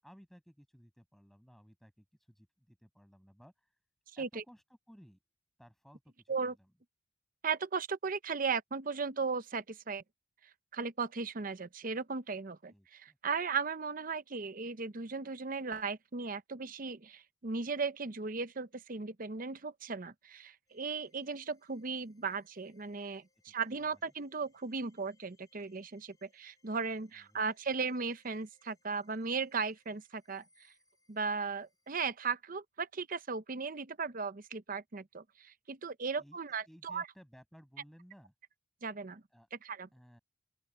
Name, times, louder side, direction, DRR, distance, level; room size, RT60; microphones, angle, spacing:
voice 1, 0.0-3.7 4.2-5.2 5.6-6.7 12.7-13.2 23.3-23.5 23.8-24.0 27.1-27.7 36.2-36.4 36.7-38.3 39.3-39.5 39.9-40.2, equal, ahead, 6.5 m, -59 dB
voice 2, 7.4-10.0 10.7-30.4 31.1-37.0 38.8-39.2 39.6-39.9, right 5 dB, 40° right, 0.7 m, -37 dB
sound 1, 20.7-31.9, left 2 dB, 15° left, 5.3 m, -75 dB
open air
head